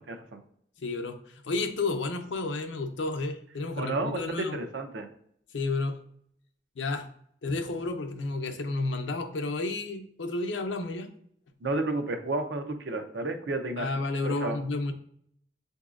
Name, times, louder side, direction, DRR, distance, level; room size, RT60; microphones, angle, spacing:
voice 1, 0.1-0.4 3.8-5.1 11.6-13.9 14.2-14.6, right 2 dB, 75° right, 6 dB, 0.6 m, -31 dB
voice 2, 0.8-4.6 5.5-6.0 6.8-7.1 7.4-11.1 13.8-14.9, left 3 dB, 90° left, 6 dB, 0.6 m, -31 dB
6.8 x 2.7 x 2.4 m, 0.68 s
head